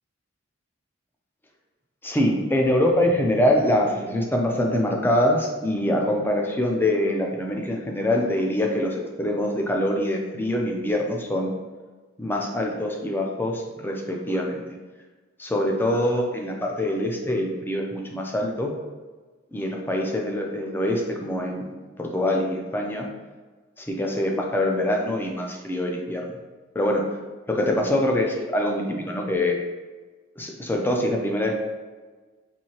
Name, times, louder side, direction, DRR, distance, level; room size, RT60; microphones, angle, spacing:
voice 1, 2.0-11.5 12.2-14.6 15.4-18.7 19.5-23.1 23.8-26.3 26.7-27.0 27.5-29.6 30.4-31.6, left 1 dB, 10° left, 1 dB, 0.4 m, -24 dB
4.3 x 2.7 x 2.9 m, 1.3 s
head